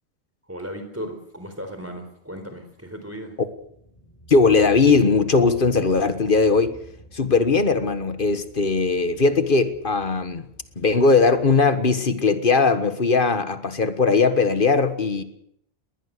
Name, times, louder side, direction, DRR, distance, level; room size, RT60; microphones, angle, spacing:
voice 1, 0.5-3.4, equal, 15° right, 6 dB, 4.2 m, -36 dB
sound 1, 3.6-11.8, right 2 dB, 30° left, 8.3 m, -48 dB
voice 2, 4.3-6.8 7.1-10.5 10.8-15.2, left 4 dB, 55° left, 10 dB, 1.6 m, -19 dB
21.0 x 19.5 x 6.7 m, 0.73 s
omnidirectional pair, 1.1 m